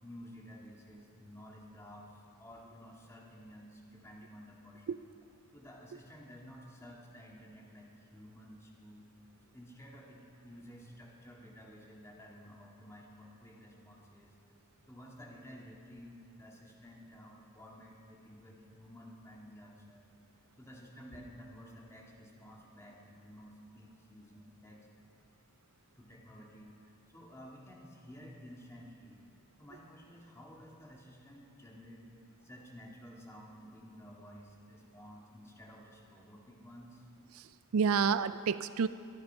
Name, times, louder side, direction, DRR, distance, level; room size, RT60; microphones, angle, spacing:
voice 1, 0.0-5.0 5.5-14.4 14.9-20.1 20.6-24.9 25.9-29.2 29.6-32.0 32.4-37.1, equal, 10° left, -2 dB, 2.0 m, -53 dB
voice 2, 37.4-38.9, right 6 dB, 65° right, 14 dB, 0.3 m, -30 dB
23.0 x 9.6 x 5.6 m, 2.6 s
head